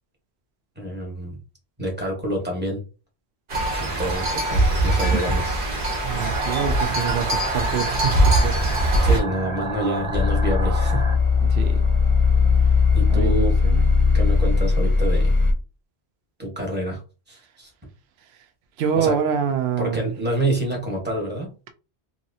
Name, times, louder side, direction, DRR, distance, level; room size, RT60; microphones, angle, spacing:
voice 1, 0.8-1.4 1.8-2.8 3.8-5.7 8.9-11.0 12.9-13.5 14.1-15.3 16.4-17.0 17.3-17.7 18.9-19.2 19.8-21.5, right 1 dB, 10° right, 1.1 m, -27 dB
sound 1, 3.5-9.2, right 1 dB, 50° right, 1.1 m, -22 dB
voice 2, 6.0-8.6 11.5-11.8 13.1-13.9 18.8-20.2, right 7 dB, 70° right, 0.8 m, -26 dB
sound 2, 6.1-11.1, right 3 dB, 35° right, 0.6 m, -31 dB
sound 3, 10.1-15.5, left 4 dB, 35° left, 0.6 m, -19 dB
2.9 x 2.8 x 2.6 m
omnidirectional pair, 1.1 m